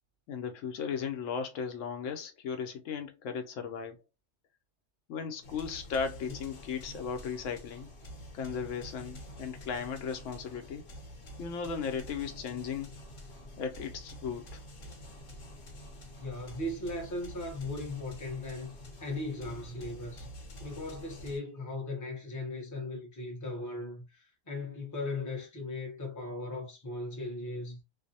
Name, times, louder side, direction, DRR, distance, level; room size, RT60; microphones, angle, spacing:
voice 1, 0.3-4.0 5.1-7.9 8.3-10.9 11.4-12.9 13.6-14.6, left 6 dB, 85° left, 0.9 m, -36 dB
sound 1, 5.4-21.4, equal, 50° left, 0.9 m, -48 dB
voice 2, 16.2-18.7 19.0-20.3 20.6-27.8, left 2 dB, 20° left, 0.6 m, -38 dB
2.6 x 2.0 x 2.6 m
omnidirectional pair, 1.3 m